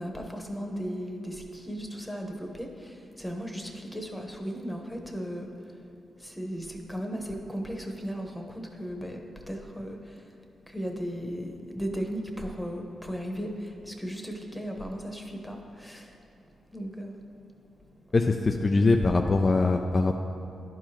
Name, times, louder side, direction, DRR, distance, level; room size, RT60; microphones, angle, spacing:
voice 1, 0.0-5.8 6.2-10.3 10.7-16.2 16.7-17.3, equal, 5° left, 3 dB, 1.1 m, -36 dB
voice 2, 18.1-20.2, left 3 dB, 40° left, 3 dB, 0.4 m, -22 dB
11.5 x 4.7 x 3.0 m, 3.0 s
supercardioid pair, 45°, 0 cm